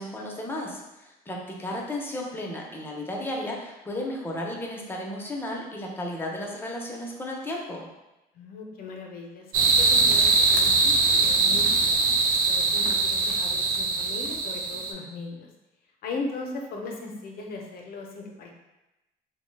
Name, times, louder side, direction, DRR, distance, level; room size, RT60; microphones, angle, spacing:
voice 1, 0.0-7.9, left 1 dB, 10° left, -1 dB, 0.6 m, -34 dB
voice 2, 1.3-1.7 8.3-12.2 12.5-15.5 16.0-18.5, left 3 dB, 65° left, 1 dB, 0.6 m, -38 dB
sound 1, 9.5-14.9, right 3 dB, 55° right, 0.4 m, -22 dB
2.9 x 2.1 x 3.2 m, 0.99 s
cardioid pair, 110°, 17 cm